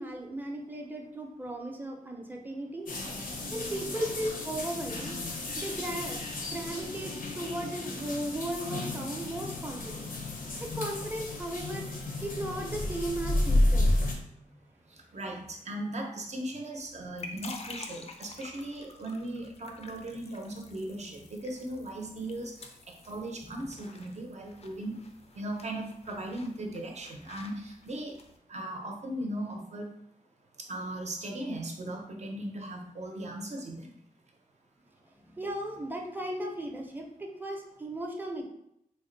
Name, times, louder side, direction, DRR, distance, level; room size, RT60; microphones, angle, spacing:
voice 1, 0.0-2.9 3.5-5.2 5.6-6.2 6.5-10.1 10.6-11.9 12.2-13.9 14.3-14.6 35.2-38.4, right 1 dB, 15° right, 0 dB, 0.6 m, -36 dB
sound 1, 2.9-14.1, left 1 dB, 80° left, 0.7 m, -32 dB
voice 2, 15.1-22.7 23.1-25.0 25.3-28.2 28.5-29.9 30.7-33.9, right 1 dB, 55° right, 1 dB, 0.7 m, -38 dB
sound 2, 16.8-28.4, left 3 dB, 50° left, 0.4 m, -49 dB
3.5 x 2.1 x 3.8 m, 0.78 s
wide cardioid pair, 115°, 14 cm